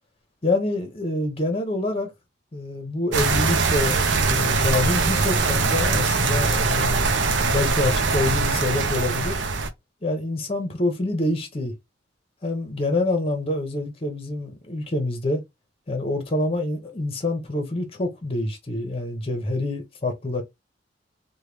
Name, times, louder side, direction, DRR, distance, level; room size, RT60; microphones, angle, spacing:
voice 1, 0.4-2.1 2.5-7.0 7.5-9.4 10.0-11.7 12.4-15.4 15.9-20.4, left 2 dB, 30° left, 0.8 m, -26 dB
sound 1, 3.1-9.7, right 4 dB, 70° right, 0.6 m, -22 dB
3.1 x 2.2 x 3.3 m
head